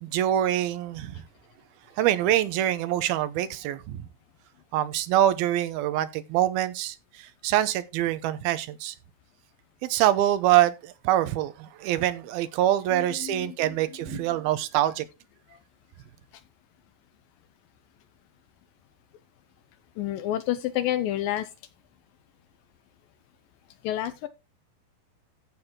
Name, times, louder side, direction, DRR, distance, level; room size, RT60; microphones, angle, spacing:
voice 1, 0.0-1.1 2.0-4.0 4.7-9.0 9.8-15.1, right 12 dB, 80° right, 2.5 m, -25 dB
voice 2, 12.9-14.2 15.5-15.6 16.3-16.4 20.0-21.5 23.8-24.3, left 12 dB, 75° left, 2.2 m, -30 dB
14.5 x 6.2 x 3.7 m
omnidirectional pair, 4.5 m